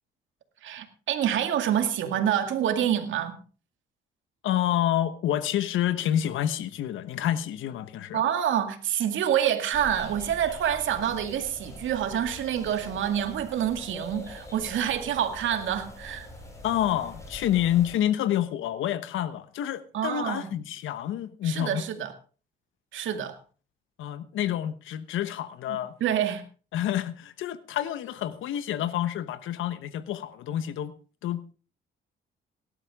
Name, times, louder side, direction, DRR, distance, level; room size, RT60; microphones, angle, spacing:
voice 1, 0.6-3.4 8.1-16.3 19.9-20.6 21.4-22.1 22.9-23.4 25.7-26.4, right 10 dB, 75° right, 2.2 m, -27 dB
voice 2, 4.4-8.2 16.6-21.8 24.0-25.9 26.7-30.9 31.2-31.5, left 11 dB, 85° left, 1.1 m, -28 dB
sound 1, 9.7-18.0, left 1 dB, 15° left, 5.9 m, -44 dB
18.0 x 12.0 x 3.6 m
cardioid pair, 90°, 20 cm